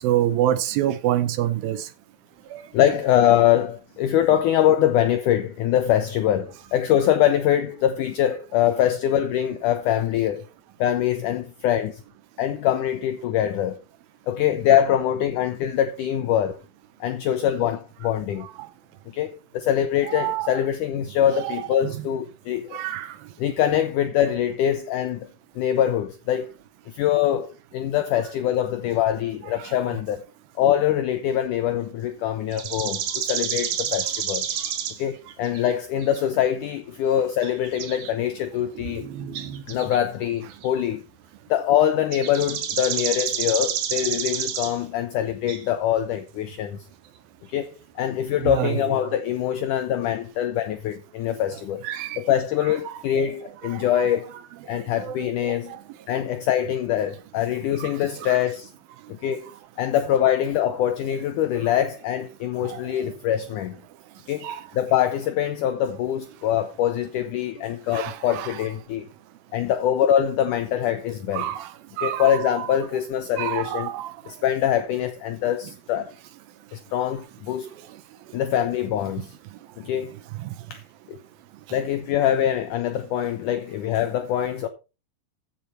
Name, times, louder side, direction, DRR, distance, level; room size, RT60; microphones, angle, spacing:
voice 1, 0.0-1.9 2.5-2.6 18.4-18.7 20.1-20.6 21.4-21.9 22.7-23.2 29.6-29.8 48.4-49.1 51.8-52.2 52.9-53.3 53.7-54.0 54.7-55.8 57.8-58.4 62.6-62.8 64.4-64.7 67.9-68.6 71.3-72.7 73.4-74.1 80.4-80.5, right 12 dB, 80° right, 2.2 m, -28 dB
voice 2, 2.7-10.4 10.8-12.0 12.4-13.8 14.3-16.6 17.0-18.5 19.1-22.8 23.4-25.3 25.6-26.5 26.9-30.2 30.6-34.4 35.0-39.1 39.7-41.0 41.5-46.8 47.5-51.9 52.2-54.3 54.7-55.8 56.1-58.7 59.1-59.5 59.8-63.8 64.3-69.1 69.5-71.5 72.0-73.9 74.3-76.1 76.7-77.7 78.3-79.4 79.8-80.1 80.7-80.8 81.1-81.2 81.7-84.7, left 10 dB, 85° left, 1.8 m, -23 dB
sound 1, 32.5-35.0 35.3-35.7 36.0-36.2 37.4-38.1 38.6-40.0 40.5-40.7 42.1-44.8 45.5-45.7 48.4-48.6, right 9 dB, 60° right, 2.2 m, -29 dB
14.5 x 5.6 x 4.3 m
omnidirectional pair, 4.6 m